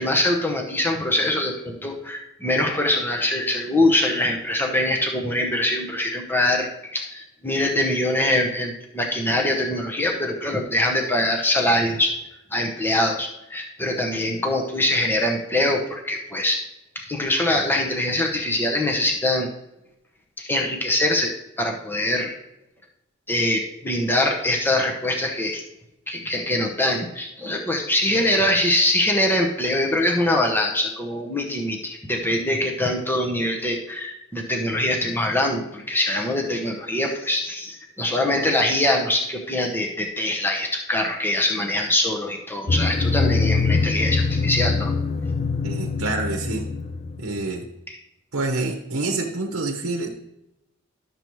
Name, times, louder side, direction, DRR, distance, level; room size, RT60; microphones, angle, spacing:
voice 1, 0.0-12.2 12.5-16.6 16.9-19.5 20.4-22.4 23.3-25.6 26.1-44.9 47.9-48.0, left 1 dB, 10° left, 1 dB, 0.8 m, -23 dB
sound 1, 42.7-47.5, left 4 dB, 30° left, 0.4 m, -23 dB
voice 2, 45.6-46.7 47.2-47.7 48.3-50.1, right 2 dB, 70° right, 1 dB, 0.9 m, -27 dB
11.5 x 6.8 x 3.1 m, 0.89 s
head